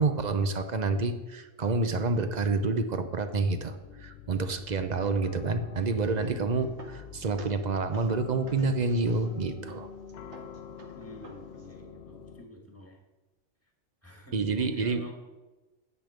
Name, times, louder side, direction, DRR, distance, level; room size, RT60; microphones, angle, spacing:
voice 1, 0.0-6.7 7.1-9.9 14.3-15.1, right 3 dB, 40° right, 9 dB, 0.8 m, -28 dB
sound 1, 3.8-12.4, left 7 dB, 65° left, 0.8 m, -46 dB
sound 2, 6.0-11.8, right 3 dB, 70° right, 1.5 m, -52 dB
voice 2, 6.2-6.7 10.9-13.0 14.0-15.1, equal, 10° left, 1 dB, 2.0 m, -48 dB
9.7 x 8.5 x 5.1 m, 1.1 s
omnidirectional pair, 1.3 m